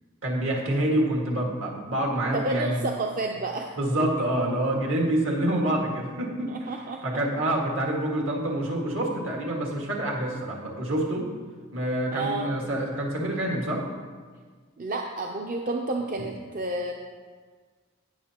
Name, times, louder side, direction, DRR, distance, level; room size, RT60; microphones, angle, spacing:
voice 1, 0.2-2.8 3.8-6.7 7.0-11.3 11.7-13.9, right 1 dB, 65° right, -2 dB, 1.9 m, -27 dB
voice 2, 2.3-3.7 6.5-7.0 12.1-12.5 14.8-16.9, right 2 dB, 40° right, 1 dB, 0.6 m, -30 dB
17.5 x 6.6 x 2.9 m, 1.5 s
head